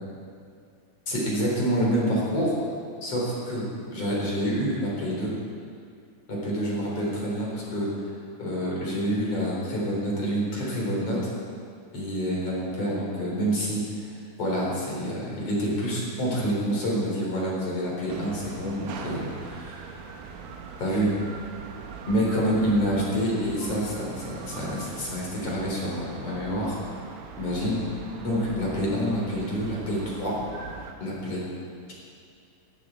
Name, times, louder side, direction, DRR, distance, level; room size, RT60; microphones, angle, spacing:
voice 1, 1.1-2.6 3.0-3.7 3.9-5.3 6.3-7.9 8.4-11.2 11.9-14.1 14.4-19.8 20.8-21.1 22.1-26.8 27.4-27.8 28.2-30.3 31.0-31.5, equal, 35° left, -4 dB, 4.7 m, -27 dB
sound 1, 18.1-30.9, right 5 dB, 85° right, 3.7 m, -41 dB
19.5 x 15.0 x 4.6 m, 2.3 s
omnidirectional pair, 5.2 m